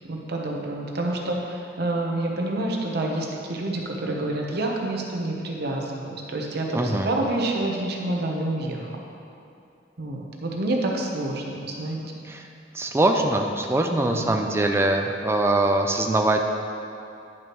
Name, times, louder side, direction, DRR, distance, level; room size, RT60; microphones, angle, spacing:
voice 1, 0.1-8.9 10.0-12.3 14.0-14.4, right 2 dB, 60° right, 0 dB, 0.9 m, -28 dB
voice 2, 6.7-7.1 12.2-12.5 12.7-16.4, right 2 dB, 15° right, 3 dB, 0.4 m, -23 dB
10.0 x 6.1 x 3.0 m, 2.6 s
head